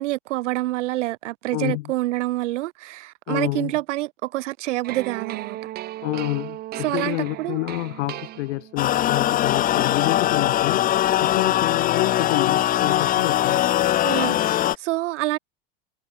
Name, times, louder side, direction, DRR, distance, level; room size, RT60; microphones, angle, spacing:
voice 1, 0.0-5.6 6.8-7.6 14.0-15.4, right 18 dB, 85° right, 2.1 m, -27 dB
voice 2, 1.5-1.8 3.3-3.7 6.0-10.9 11.2-13.6, left 19 dB, 75° left, 1.5 m, -28 dB
sound 1, 4.8-8.9, right 15 dB, 25° right, 1.0 m, -36 dB
sound 2, 8.8-14.8, left 12 dB, 25° left, 1.3 m, -21 dB
supercardioid pair, 170°, 35 cm